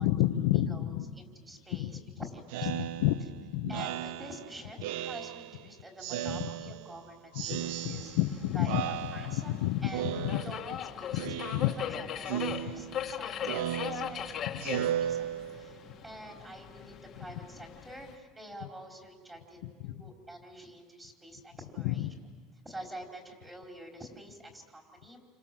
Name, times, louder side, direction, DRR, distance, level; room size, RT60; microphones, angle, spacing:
voice 1, 0.0-1.1 1.7-1.9 2.7-3.3 3.5-3.8 7.3-7.6 7.8-8.8 9.1-10.4 11.1-11.7 14.5-14.8 19.6-19.9 21.8-22.1, left 14 dB, 85° left, 5 dB, 1.2 m, -30 dB
voice 2, 0.5-2.9 3.7-8.1 8.5-9.6 9.8-10.1 10.4-10.6 10.9-22.1 22.6-25.2, right 1 dB, 10° right, 1 dB, 4.5 m, -47 dB
Speech synthesizer, 2.5-5.6 6.0-7.0 7.4-8.4 8.7-9.6 9.9-10.8 11.2-12.0 12.3-15.8, right 11 dB, 80° right, 0.8 m, -36 dB
Subway metro underground, 7.6-18.2, left 9 dB, 35° left, 1.8 m, -40 dB
29.5 x 26.5 x 7.7 m, 1.5 s
cardioid pair, 155°, 0 cm